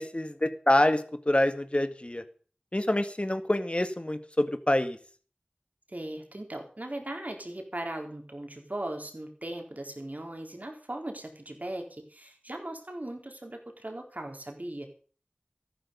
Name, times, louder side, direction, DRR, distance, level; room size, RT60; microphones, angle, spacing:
voice 1, 0.0-2.2 2.7-5.0, left 1 dB, 35° left, 10 dB, 1.9 m, -26 dB
voice 2, 5.9-14.9, right 1 dB, 50° right, 3 dB, 4.2 m, -38 dB
14.0 x 12.0 x 5.5 m, 0.41 s
wide cardioid pair, 45°, 3 cm